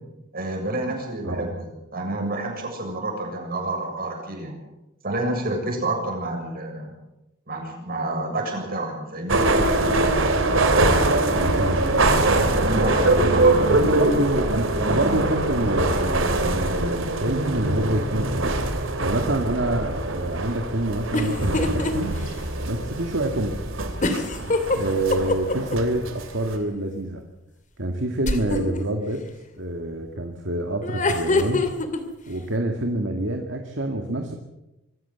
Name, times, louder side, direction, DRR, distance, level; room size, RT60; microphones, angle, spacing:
voice 1, 0.3-4.6 5.0-6.9 7.5-9.5 12.6-13.7, right 2 dB, 50° right, 2 dB, 7.1 m, -29 dB
sound 1, 9.3-26.6, right 2 dB, 90° right, 2.9 m, -23 dB
voice 2, 11.3-12.3 13.1-18.6 19.0-22.2 22.7-23.5 24.7-27.2 27.8-29.2 29.6-31.6 32.3-34.3, right 1 dB, 65° right, 4 dB, 2.1 m, -26 dB
sound 2, 21.1-21.9 22.3-22.4 24.0-25.7 28.2-28.8 30.8-32.0, left 2 dB, 40° left, 2.6 m, -23 dB
25.0 x 14.5 x 8.2 m, 0.95 s
head